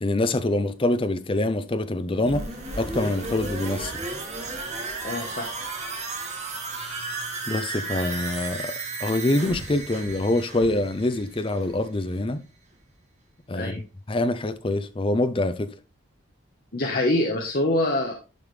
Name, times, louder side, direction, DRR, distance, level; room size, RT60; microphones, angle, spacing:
voice 1, 0.0-2.4 2.7-4.0 6.7-7.0 7.5-8.7 9.0-12.4 13.5-13.8 14.1-15.7, left 2 dB, 25° left, 0.5 m, -25 dB
sound 1, 2.2-12.0 12.3-12.4, right 3 dB, 35° right, 1.7 m, -34 dB
voice 2, 5.0-5.5 13.5-13.8 16.7-18.1, left 1 dB, 45° left, 1.0 m, -25 dB
11.0 x 5.0 x 3.2 m
head